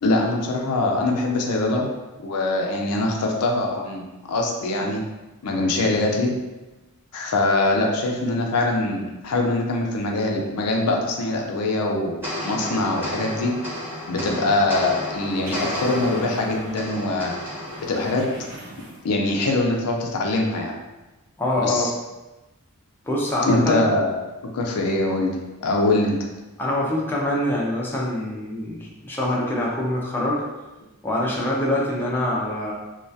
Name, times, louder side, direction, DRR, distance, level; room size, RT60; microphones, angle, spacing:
voice 1, 0.0-1.9 2.2-5.0 5.4-6.3 7.1-13.5 14.1-17.4 17.8-18.2 19.0-20.7 21.6-21.9 23.5-24.1 24.5-25.4 25.6-26.2, left 2 dB, 85° left, 1 dB, 0.4 m, -23 dB
sound 1, 12.2-18.9, left 1 dB, 10° right, 0.9 m, -32 dB
sound 2, 15.0-17.0 17.2-19.3 19.6-19.7, right 1 dB, 65° right, 0.6 m, -42 dB
voice 2, 21.4-21.9 23.1-23.8 26.6-30.4 31.0-32.7, left 1 dB, 10° left, -4 dB, 0.4 m, -24 dB
2.3 x 2.2 x 2.6 m, 1.1 s
head